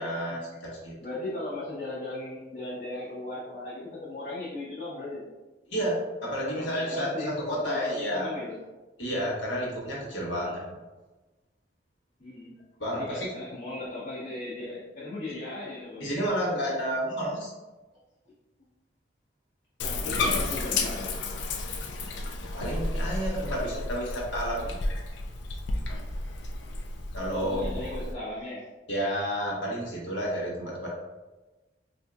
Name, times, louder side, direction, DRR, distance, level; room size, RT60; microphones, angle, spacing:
voice 1, 0.0-0.9 5.7-8.3 9.0-10.6 12.8-13.3 15.3-15.4 16.0-17.5 22.5-24.8 27.1-27.9 28.9-30.9, equal, 90° left, -4 dB, 1.2 m, -31 dB
voice 2, 1.0-5.2 6.5-8.6 12.2-12.5 12.9-16.1 19.8-21.1 27.4-28.6, left 2 dB, 45° left, -10 dB, 0.8 m, -37 dB
Bathtub (filling or washing), 19.8-28.1, left 2 dB, 70° left, 0.4 m, -32 dB
4.3 x 2.6 x 2.3 m, 1.2 s
head